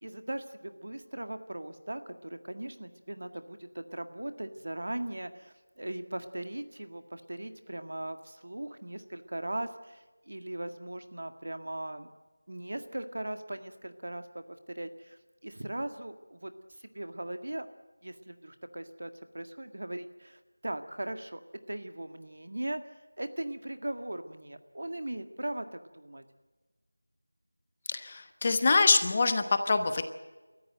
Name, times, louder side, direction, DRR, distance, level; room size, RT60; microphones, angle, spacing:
voice 1, 0.0-12.1 12.5-14.4 14.7-17.7 18.0-21.4 21.7-22.8 23.2-26.2, right 1 dB, 65° right, 9 dB, 1.8 m, -39 dB
voice 2, 27.9-30.0, left 3 dB, 25° left, 9 dB, 1.0 m, -25 dB
29.0 x 14.0 x 7.9 m, 1.2 s
figure-of-eight pair, 175°, 0 cm